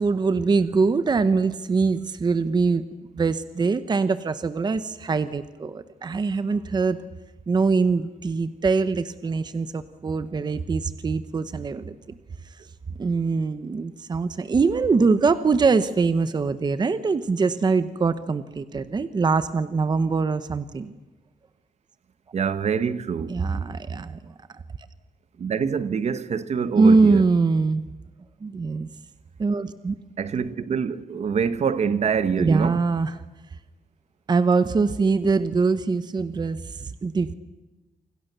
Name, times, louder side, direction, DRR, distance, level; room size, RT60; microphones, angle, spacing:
voice 1, 0.0-2.8 3.1-7.0 7.5-12.0 13.0-20.9 23.3-24.3 26.8-27.8 28.4-28.9 29.4-30.0 32.4-33.2 34.3-37.3, right 4 dB, 30° right, 0.9 m, -23 dB
voice 2, 22.3-23.3 25.4-27.2 30.2-32.8, right 6 dB, 50° right, 1.1 m, -25 dB
28.5 x 26.0 x 6.8 m
wide cardioid pair, 160°, 14 cm